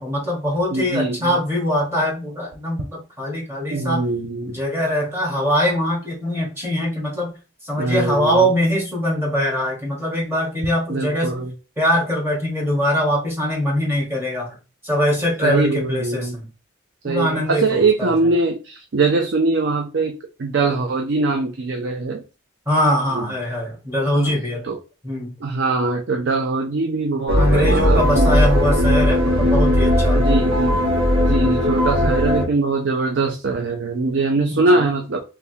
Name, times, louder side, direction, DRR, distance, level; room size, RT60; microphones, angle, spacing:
voice 1, 0.0-4.0 4.5-7.3 7.6-11.5 11.8-14.6 14.8-16.5 17.0-18.1 22.7-24.7 25.0-25.4 27.4-30.3 31.3-31.6 34.5-34.9, equal, 10° right, -3 dB, 1.3 m, -22 dB
voice 2, 0.7-1.4 3.7-4.6 7.8-8.5 10.9-11.5 15.4-16.4 17.0-22.2 23.1-23.3 24.1-24.8 25.4-28.3 30.1-30.8 31.2-35.2, right 3 dB, 60° right, 3 dB, 0.4 m, -22 dB
sound 1, 27.3-32.5, left 1 dB, 80° right, 1.1 m, -17 dB
3.4 x 3.2 x 2.7 m, 0.32 s
head